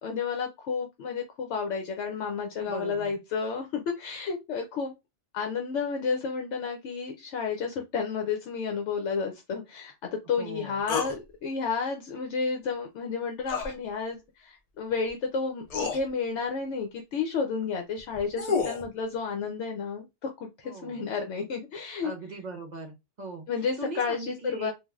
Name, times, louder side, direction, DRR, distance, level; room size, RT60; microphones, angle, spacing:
voice 1, 0.0-4.9 5.3-20.0 20.4-22.1 23.5-24.7, left 5 dB, 75° left, 0.9 m, -31 dB
voice 2, 2.6-3.1 10.4-10.8 20.6-21.0 22.0-23.4 23.8-24.7, right 2 dB, 45° right, 0.6 m, -39 dB
sound 1, 10.9-11.2 13.5-13.7 15.1-15.2 15.7-16.0 18.0-18.8, left 5 dB, 45° left, 0.5 m, -29 dB
3.2 x 2.3 x 2.3 m
omnidirectional pair, 1.2 m